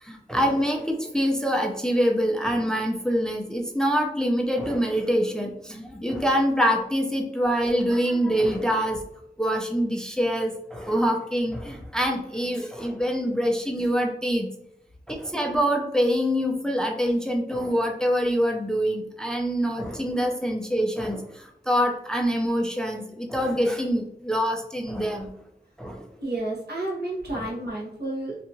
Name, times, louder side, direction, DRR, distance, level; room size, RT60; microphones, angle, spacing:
voice 1, 0.0-9.0 9.4-14.5 15.1-25.3 25.8-26.0, equal, 5° left, 1 dB, 0.4 m, -25 dB
voice 2, 26.2-28.4, right 2 dB, 80° right, -4 dB, 0.9 m, -31 dB
2.8 x 2.3 x 2.6 m, 0.78 s
wide cardioid pair, 60°, 17 cm